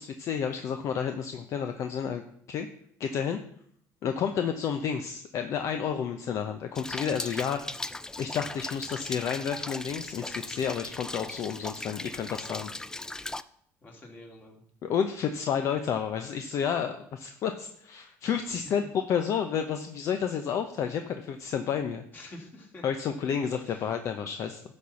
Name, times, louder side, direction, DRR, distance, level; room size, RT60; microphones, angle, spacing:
voice 1, 0.0-2.2 2.5-2.7 3.0-3.4 4.0-7.7 8.2-12.7 14.8-18.8 19.1-22.0 22.8-24.6, left 7 dB, 55° left, 7 dB, 0.8 m, -30 dB
Rain, 6.7-13.4, left 2 dB, 10° left, 0.4 m, -38 dB
voice 2, 13.8-14.6 18.4-18.9 22.1-22.8 23.6-23.9, left 1 dB, 30° left, 0 dB, 3.0 m, -47 dB
11.5 x 4.4 x 7.0 m, 0.66 s
cardioid pair, 110°, 6 cm